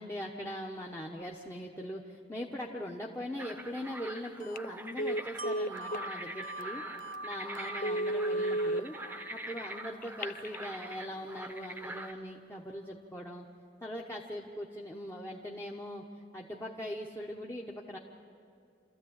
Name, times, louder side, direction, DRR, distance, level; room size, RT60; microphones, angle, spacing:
voice 1, 0.0-6.8 7.2-9.0 9.3-13.4 13.8-18.0, equal, 15° left, -1 dB, 1.0 m, -41 dB
sound 1, 3.4-12.1, right 1 dB, 10° right, 0.9 m, -44 dB
Telephone, 4.4-4.7 5.0-6.1 6.6-6.7 7.1-7.2 7.7-8.8 10.0-10.6, right 1 dB, 45° left, 0.5 m, -32 dB
Wind chime, 5.4-11.2 11.6-11.7, right 2 dB, 50° right, 1.0 m, -45 dB
28.0 x 14.0 x 8.9 m, 2.4 s
head